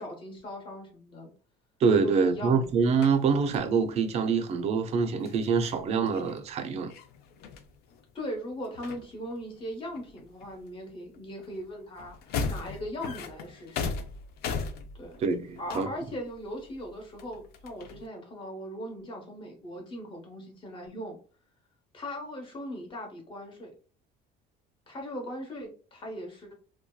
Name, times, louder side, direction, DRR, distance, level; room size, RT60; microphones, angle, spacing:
voice 1, 0.0-1.3 2.0-2.8 3.3-3.4 8.1-13.9 14.9-15.2 15.6-21.2 21.9-23.7 24.9-26.5, equal, 25° left, 0.8 m, -39 dB
voice 2, 1.8-6.9 15.2-15.9, right 5 dB, 35° right, 0.4 m, -25 dB
sound 1, 2.6-3.7 5.2-8.3 8.6-9.6 9.9-10.8 11.1-18.1, left 5 dB, 55° left, 0.4 m, -38 dB
2.6 x 2.2 x 2.2 m
cardioid pair, 155°, 19 cm